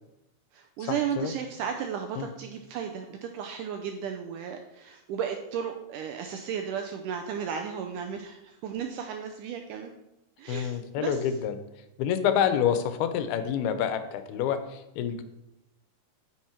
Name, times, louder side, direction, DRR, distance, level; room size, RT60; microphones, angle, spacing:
voice 1, 0.5-9.9 10.4-11.3, right 7 dB, 80° right, 4 dB, 1.9 m, -34 dB
voice 2, 10.5-11.6 12.0-15.2, left 8 dB, 90° left, 10 dB, 2.7 m, -27 dB
9.2 x 6.4 x 4.5 m, 0.91 s
omnidirectional pair, 4.3 m